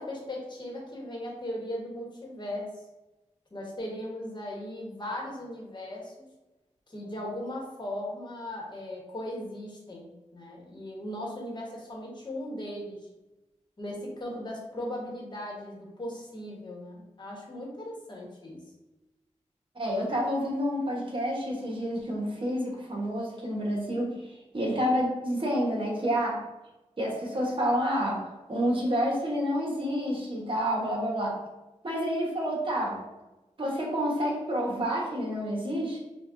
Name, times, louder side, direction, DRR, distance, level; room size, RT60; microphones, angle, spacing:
voice 1, 0.0-2.7 3.5-6.1 6.9-10.1 10.3-13.0 13.8-18.6, left 1 dB, 35° left, -2 dB, 1.1 m, -38 dB
voice 2, 19.7-24.1 24.5-26.4 27.0-28.2 28.5-31.3 31.8-33.0 33.6-36.0, equal, 45° right, -2 dB, 1.1 m, -29 dB
5.8 x 2.3 x 2.5 m, 1.0 s
wide cardioid pair, 80°, 12 cm